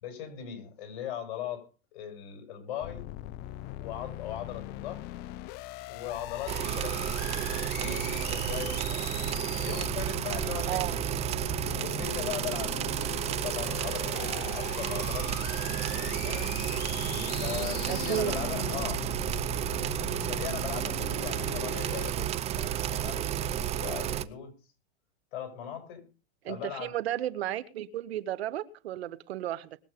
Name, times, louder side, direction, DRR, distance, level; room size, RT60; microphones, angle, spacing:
voice 1, 0.0-3.1 3.8-5.1 5.9-7.3 7.7-9.1 9.5-11.1 11.7-15.3 15.6-16.5 17.4-19.1 20.3-24.5 25.3-26.0 26.5-27.0, left 9 dB, 55° left, 6.2 m, -39 dB
sound 1, 2.8-22.1, left 15 dB, 30° left, 0.6 m, -40 dB
sound 2, 6.5-24.2, right 11 dB, 20° right, 0.6 m, -32 dB
voice 2, 10.7-11.0 17.9-18.3 26.4-29.8, right 12 dB, 75° right, 1.4 m, -33 dB
21.0 x 8.4 x 5.2 m
hypercardioid pair, 135°, 32 cm